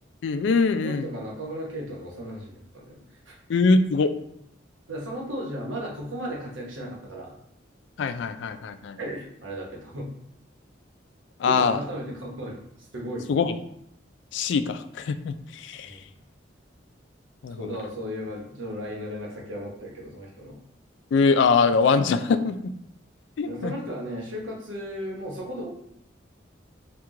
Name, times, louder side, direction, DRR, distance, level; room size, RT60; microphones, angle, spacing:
voice 1, 0.2-1.1 3.5-4.1 8.0-9.0 11.4-11.8 13.3-13.6 14.3-16.0 17.4-17.7 21.1-22.7 23.4-23.7, left 4 dB, 70° left, 10 dB, 0.3 m, -23 dB
voice 2, 0.8-3.4 4.9-7.3 9.0-10.1 11.4-13.3 15.8-16.0 17.6-20.6 23.4-25.7, equal, 85° right, -2 dB, 1.1 m, -35 dB
4.5 x 2.3 x 3.7 m, 0.77 s
head